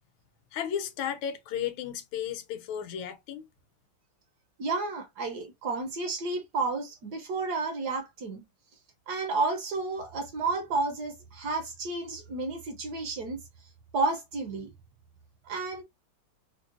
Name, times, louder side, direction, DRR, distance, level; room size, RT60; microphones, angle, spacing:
voice 1, 0.5-3.5, left 9 dB, 85° left, 1.5 m, -34 dB
voice 2, 4.6-8.4 9.1-13.4 13.9-14.7 15.5-15.8, right 3 dB, 65° right, 1.1 m, -31 dB
4.4 x 2.0 x 2.5 m
omnidirectional pair, 2.2 m